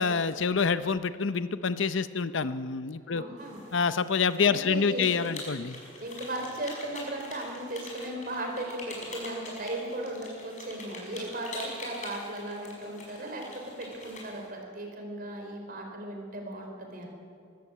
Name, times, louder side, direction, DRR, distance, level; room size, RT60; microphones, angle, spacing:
voice 1, 0.0-3.2 3.7-5.8, left 5 dB, 65° left, 13 dB, 0.7 m, -27 dB
voice 2, 3.1-3.6 4.4-5.1 6.0-17.1, right 1 dB, 45° right, 2 dB, 4.4 m, -37 dB
sound 1, 3.4-14.5, left 2 dB, 35° left, 5.8 m, -45 dB
23.0 x 14.5 x 8.3 m, 2.3 s
head